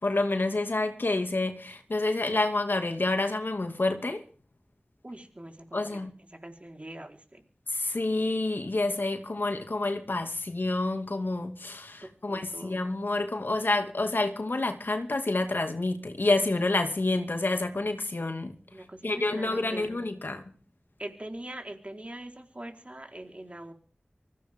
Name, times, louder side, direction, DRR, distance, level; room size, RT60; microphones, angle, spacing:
voice 1, 0.0-4.2 5.7-6.1 7.7-18.5 19.0-20.4, left 2 dB, 65° left, 2.4 m, -28 dB
voice 2, 5.0-6.0 6.4-7.4 12.3-12.8 18.7-20.0 21.0-23.7, right 1 dB, 35° right, 4.4 m, -42 dB
24.0 x 15.5 x 3.8 m
wide cardioid pair, 50°, 4 cm